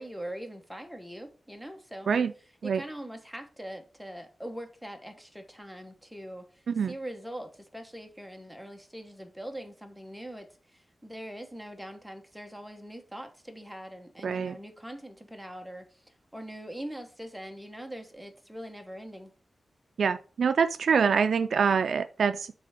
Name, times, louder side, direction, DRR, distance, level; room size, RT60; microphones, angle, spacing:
voice 1, 0.0-2.1 2.6-19.3, right 1 dB, ahead, 1.1 m, -42 dB
voice 2, 14.2-14.5 20.0-22.5, right 6 dB, 85° right, 0.3 m, -25 dB
7.5 x 3.4 x 4.9 m
wide cardioid pair, 125°, 0 cm